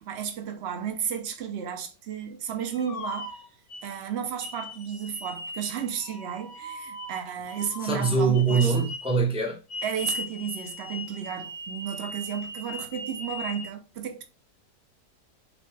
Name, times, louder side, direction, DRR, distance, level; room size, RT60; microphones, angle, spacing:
voice 1, 0.0-3.4 3.8-8.7 9.8-14.2, right 8 dB, 55° right, 0.8 m, -33 dB
sound 1, 2.7-3.9 4.4-9.2 9.7-13.7, left 2 dB, 55° left, 0.9 m, -39 dB
voice 2, 7.8-9.6, right 4 dB, 5° right, 0.5 m, -23 dB
4.1 x 3.3 x 3.3 m
omnidirectional pair, 1.8 m